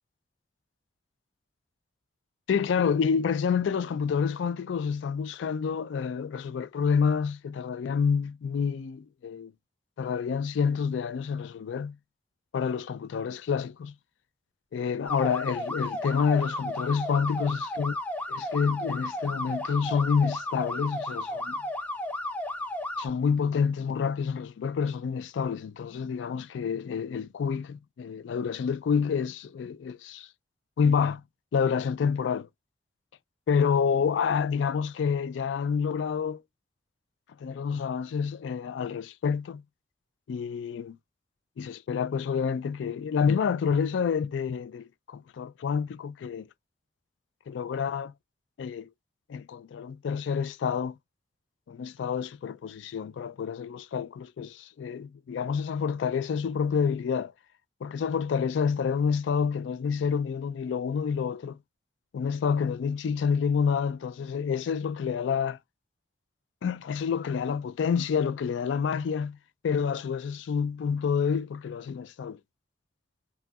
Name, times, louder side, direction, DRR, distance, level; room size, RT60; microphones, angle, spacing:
voice 1, 2.5-9.5 10.0-12.0 12.5-13.9 14.7-17.9 18.3-21.6 23.0-30.3 30.8-31.2 31.5-32.5 33.5-36.4 37.4-39.6 40.3-41.0 41.6-46.5 47.5-48.1 48.6-48.9 49.3-51.0 51.7-57.3 57.8-61.6 62.1-65.6 66.6-69.4 69.6-72.4, left 6 dB, 80° left, 0.3 m, -28 dB
sound 1, 15.1-23.1, left 1 dB, 10° left, 0.4 m, -33 dB
3.0 x 2.3 x 2.6 m
head